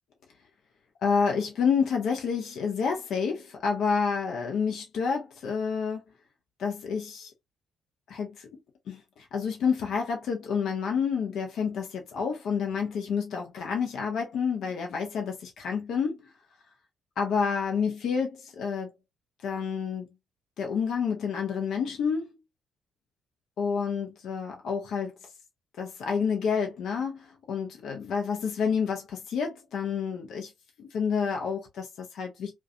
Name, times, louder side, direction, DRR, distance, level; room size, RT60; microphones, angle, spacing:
voice 1, 1.0-6.0 6.6-7.3 8.1-8.5 8.9-16.2 17.2-18.9 19.4-20.1 20.6-22.3 23.6-25.1 25.8-30.5 30.8-32.6, left 6 dB, 60° left, 0.6 m, -29 dB
2.4 x 2.2 x 2.6 m
hypercardioid pair, 45°, 0 cm